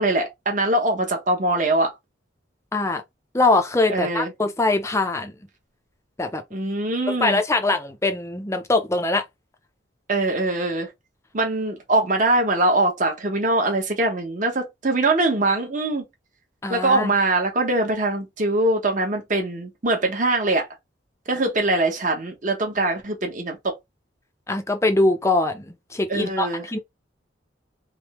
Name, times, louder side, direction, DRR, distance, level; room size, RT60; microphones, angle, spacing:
voice 1, 0.0-1.9 3.9-4.3 6.5-7.4 10.1-10.9 11.3-16.0 16.7-20.7 21.3-23.8 26.1-26.6, right 2 dB, 45° right, 1.1 m, -22 dB
voice 2, 3.3-5.3 6.2-6.4 7.1-9.2 16.6-17.1 24.5-26.8, left 2 dB, 15° left, 0.6 m, -22 dB
3.4 x 2.2 x 2.9 m
head